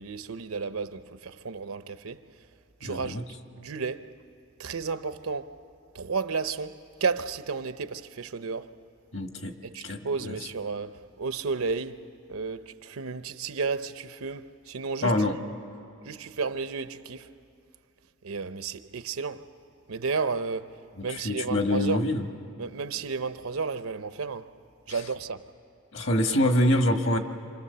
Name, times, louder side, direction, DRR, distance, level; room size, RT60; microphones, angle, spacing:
voice 1, 0.0-2.2 2.8-3.2 3.5-4.1 4.6-5.6 5.9-8.7 9.6-12.0 12.3-15.2 16.0-17.3 18.2-19.5 19.9-22.0 22.6-24.5 24.9-25.5, right 4 dB, 85° right, 0.8 m, -32 dB
voice 2, 2.8-3.2 9.1-9.5 9.8-10.3 15.0-15.3 21.1-22.2 24.9-25.0 25.9-27.2, left 1 dB, 60° left, 1.5 m, -25 dB
27.0 x 27.0 x 6.8 m
head